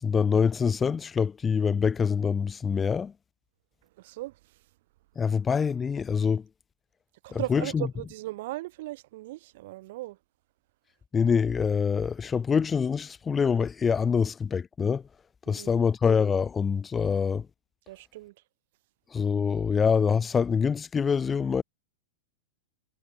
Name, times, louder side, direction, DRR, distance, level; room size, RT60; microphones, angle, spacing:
voice 1, 0.0-3.1 5.2-6.4 7.3-7.9 11.1-15.0 15.5-17.5 19.1-21.6, left 6 dB, 20° left, 3.1 m, -25 dB
voice 2, 4.0-4.3 7.2-10.2 15.5-15.8 17.9-18.3, right 18 dB, 60° right, 5.1 m, -37 dB
hypercardioid pair, 125°, 0 cm